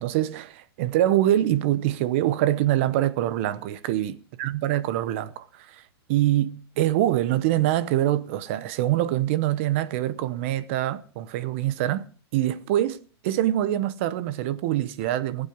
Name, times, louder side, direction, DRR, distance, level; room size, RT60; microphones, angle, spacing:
voice 1, 0.0-5.8 6.1-12.1 12.3-15.5, right 13 dB, 30° right, 0.8 m, -24 dB
19.0 x 8.9 x 5.9 m
supercardioid pair, 180°, 14 cm